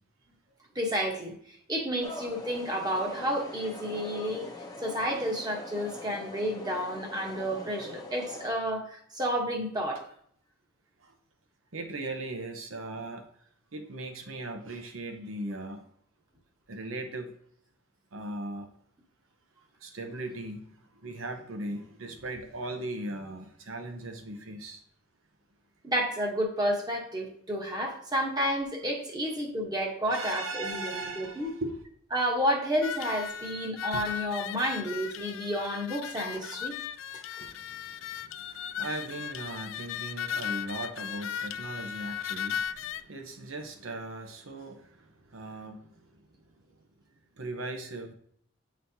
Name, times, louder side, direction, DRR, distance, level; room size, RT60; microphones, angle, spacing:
voice 1, 0.7-4.5 4.8-10.0 25.8-31.5 32.1-36.8 37.4-37.5, equal, 20° right, 1 dB, 1.1 m, -31 dB
sound 1, 2.0-8.5, left 2 dB, 20° left, 0.7 m, -43 dB
voice 2, 11.7-13.2 13.7-15.8 16.7-17.3 18.1-18.7 19.8-20.7 21.0-24.8 30.1-31.8 37.4-46.1 47.4-48.1, right 2 dB, 75° right, 5 dB, 0.9 m, -38 dB
sound 2, 32.8-43.0, left 8 dB, 65° left, 0.3 m, -37 dB
9.2 x 4.1 x 2.8 m, 0.64 s
head